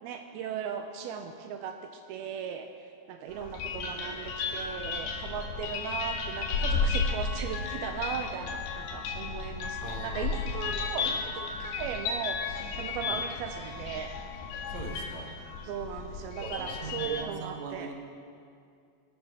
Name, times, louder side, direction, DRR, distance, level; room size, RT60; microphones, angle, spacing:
voice 1, 0.0-2.7 3.1-14.1 15.6-17.9, right 7 dB, 90° right, 6 dB, 2.1 m, -37 dB
sound 1, 3.3-17.2, left 4 dB, 65° left, 2.9 m, -34 dB
voice 2, 9.8-10.5 13.0-13.2 14.7-15.3 16.4-17.9, right 5 dB, 60° right, 2 dB, 2.0 m, -41 dB
22.5 x 7.6 x 6.1 m, 2.4 s
omnidirectional pair, 5.1 m